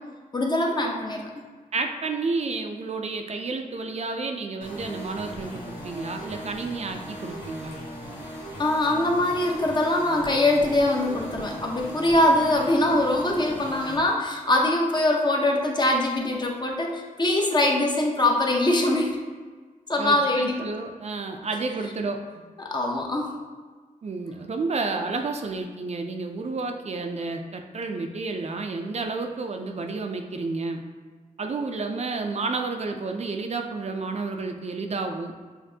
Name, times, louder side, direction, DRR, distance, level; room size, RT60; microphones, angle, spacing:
voice 1, 0.3-1.3 8.6-19.2 19.9-20.7 22.6-23.3, left 1 dB, 30° left, 0 dB, 0.6 m, -23 dB
voice 2, 1.7-7.8 20.0-22.2 24.0-30.8 31.4-35.3, right 3 dB, 50° right, 4 dB, 0.4 m, -31 dB
sound 1, 4.6-14.0, equal, 90° left, 1.5 m, -38 dB
7.3 x 2.6 x 2.7 m, 1.5 s
wide cardioid pair, 125°, 14 cm